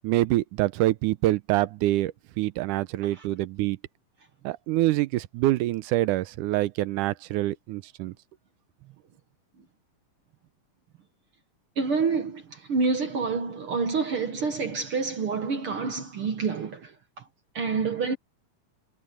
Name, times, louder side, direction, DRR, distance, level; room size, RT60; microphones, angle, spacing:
voice 1, 0.0-3.8 4.4-8.1, right 16 dB, 85° right, 2.2 m, -26 dB
voice 2, 11.8-16.9 17.5-18.2, right 4 dB, 50° right, 1.9 m, -27 dB
omnidirectional pair, 3.6 m